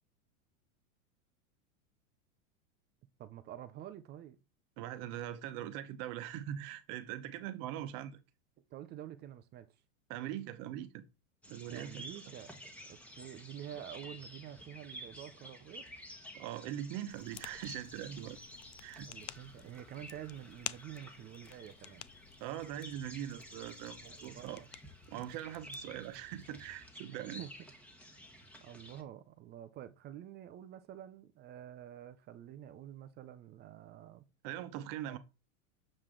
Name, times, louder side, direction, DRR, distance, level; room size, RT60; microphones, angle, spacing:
voice 1, 3.2-4.4 8.7-9.7 11.7-12.5 12.8-15.9 19.1-22.0 24.1-24.7 27.4-27.5 28.6-34.2 35.1-35.2, right 11 dB, 25° right, 0.5 m, -48 dB
voice 2, 4.8-8.2 10.1-11.0 11.5-12.0 16.3-18.4 18.8-19.1 22.4-24.6 25.1-27.4 34.4-35.2, right 11 dB, 45° right, 1.0 m, -42 dB
sound 1, 11.4-29.0, equal, 5° left, 1.2 m, -52 dB
sound 2, 17.1-26.8, left 17 dB, 60° left, 0.6 m, -51 dB
7.4 x 4.7 x 3.8 m
supercardioid pair, 125°, 43 cm